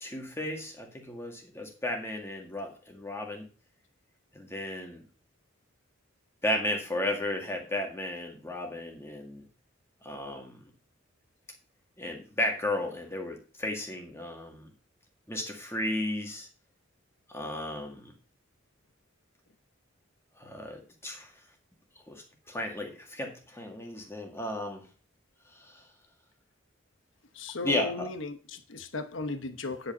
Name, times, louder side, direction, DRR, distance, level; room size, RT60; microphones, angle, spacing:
voice 1, 0.0-3.4 4.3-5.0 6.4-9.4 10.0-10.6 12.0-14.7 15.3-16.5 17.3-18.1 20.4-21.3 22.1-24.9 25.5-25.8 27.6-28.1, left 1 dB, 15° left, 2.0 m, -34 dB
voice 2, 27.3-29.9, left 3 dB, 65° left, 1.0 m, -36 dB
9.8 x 5.6 x 5.5 m
head